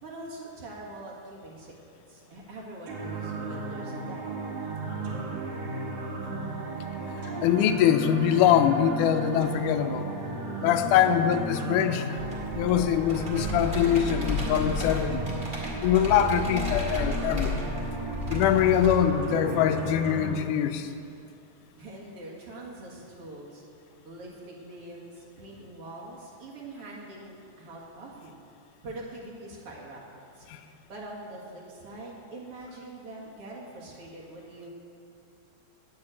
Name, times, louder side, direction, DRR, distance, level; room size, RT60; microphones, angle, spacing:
voice 1, 0.0-4.6 21.8-23.6 24.0-28.4 28.8-30.0 30.3-30.5 30.9-34.7, right 2 dB, 50° right, -4 dB, 2.6 m, -43 dB
sound 1, 2.9-20.3, right 3 dB, 70° right, 3.1 m, -34 dB
voice 2, 7.4-10.1 10.6-12.2 12.5-15.2 15.8-17.5 18.3-20.9 30.5-30.6, left 9 dB, 90° left, 9 dB, 2.2 m, -23 dB
Computer keyboard, 12.2-18.9, left 2 dB, 20° right, 2.1 m, -33 dB
9.7 x 7.7 x 8.8 m, 2.5 s
omnidirectional pair, 3.5 m